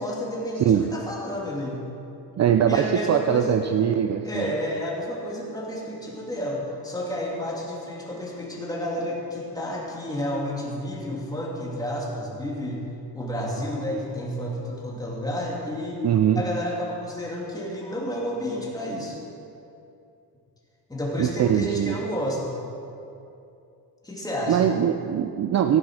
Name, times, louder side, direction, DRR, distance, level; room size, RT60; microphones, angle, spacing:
voice 1, 0.0-1.8 2.6-3.6 4.2-12.8 13.1-16.0 16.3-19.2 20.9-22.6 24.0-24.7, equal, 10° left, -4 dB, 2.9 m, -30 dB
voice 2, 0.6-0.9 2.4-4.5 16.0-16.4 21.2-22.0 24.5-25.8, right 9 dB, 40° right, 7 dB, 0.5 m, -22 dB
16.5 x 8.6 x 6.3 m, 2.7 s
cardioid pair, 135°, 40 cm